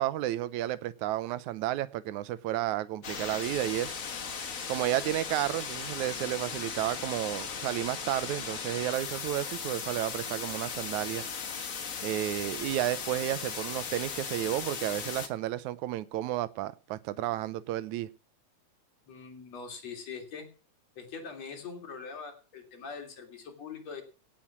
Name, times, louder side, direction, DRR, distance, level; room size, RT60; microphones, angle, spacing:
voice 1, 0.0-4.0 4.7-11.2 12.0-18.1, right 14 dB, 85° right, 2.2 m, -32 dB
sound 1, 3.0-15.3, left 6 dB, 45° left, 1.1 m, -37 dB
voice 2, 19.1-20.5 21.0-24.0, left 5 dB, 60° left, 4.2 m, -42 dB
17.5 x 7.7 x 6.1 m
omnidirectional pair, 3.3 m